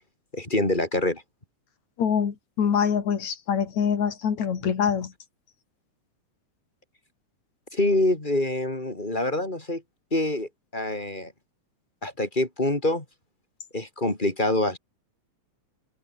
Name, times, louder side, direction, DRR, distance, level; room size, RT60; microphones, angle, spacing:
voice 1, 0.3-1.2 7.7-9.8 10.1-11.3 12.0-13.0 13.7-14.8, left 1 dB, 15° left, 3.8 m, -25 dB
voice 2, 2.0-5.1, left 7 dB, 70° left, 3.9 m, -25 dB
omnidirectional pair, 3.4 m